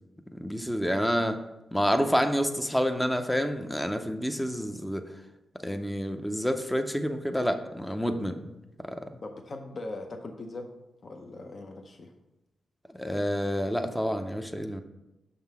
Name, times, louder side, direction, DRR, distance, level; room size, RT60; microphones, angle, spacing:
voice 1, 0.4-1.4 1.7-5.0 5.6-8.4 8.8-9.0 13.0-14.8, equal, 5° left, 6 dB, 0.5 m, -28 dB
voice 2, 9.2-10.7 11.0-12.1, left 2 dB, 45° left, 3 dB, 0.7 m, -40 dB
6.5 x 3.7 x 5.9 m, 0.96 s
wide cardioid pair, 105°, 0 cm